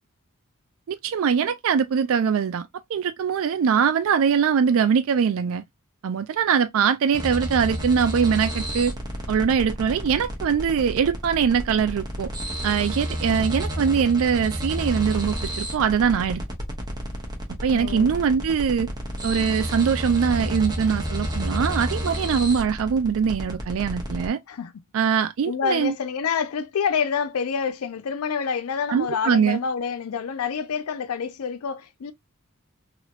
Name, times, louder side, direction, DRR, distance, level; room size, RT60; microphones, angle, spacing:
voice 1, 0.9-2.6 2.9-5.6 6.0-8.9 9.3-12.3 12.6-16.4 17.6-18.9 19.2-24.4 24.9-25.9 28.9-29.6, right 6 dB, 65° right, 0.3 m, -22 dB
sound 1, 7.1-24.3, equal, 20° right, 1.0 m, -30 dB
voice 2, 17.7-18.1 24.5-24.7 25.5-32.1, left 6 dB, 75° left, 0.5 m, -27 dB
3.1 x 2.9 x 2.4 m
head